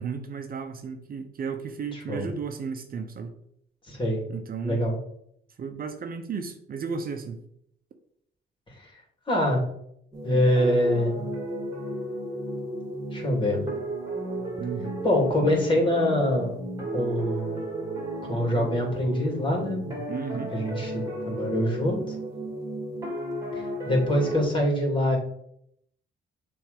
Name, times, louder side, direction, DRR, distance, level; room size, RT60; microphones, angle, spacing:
voice 1, 0.0-3.3 4.3-4.8 5.6-7.4 14.6-15.0 20.1-20.5, right 5 dB, 50° right, 6 dB, 0.8 m, -34 dB
voice 2, 1.9-2.3 3.9-4.2 4.6-5.0 8.7-8.9 9.3-9.6 10.2-11.2 13.1-13.6 15.0-16.6 16.9-17.6 18.2-20.0 20.5-22.1 23.5-25.2, left 1 dB, 25° left, 0 dB, 3.0 m, -25 dB
sound 1, 10.1-24.4, right 1 dB, 15° right, 2.7 m, -34 dB
7.0 x 3.5 x 5.2 m, 0.71 s
cardioid pair, 90°, 20 cm